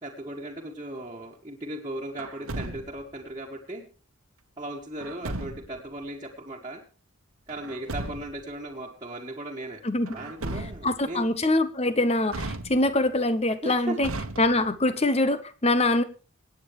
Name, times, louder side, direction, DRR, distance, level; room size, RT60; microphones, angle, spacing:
voice 1, 0.0-3.8 4.6-6.8 7.5-11.2 13.6-14.0, right 1 dB, 20° right, -5 dB, 2.0 m, -37 dB
Truck, 2.2-3.1 5.0-5.8 7.5-8.5 10.1-11.1 12.3-13.1 14.0-14.9, right 2 dB, 85° right, 1.4 m, -36 dB
voice 2, 9.8-10.2 10.8-14.1 14.4-16.0, left 2 dB, 30° left, 12 dB, 1.1 m, -24 dB
26.5 x 9.1 x 3.3 m, 0.36 s
head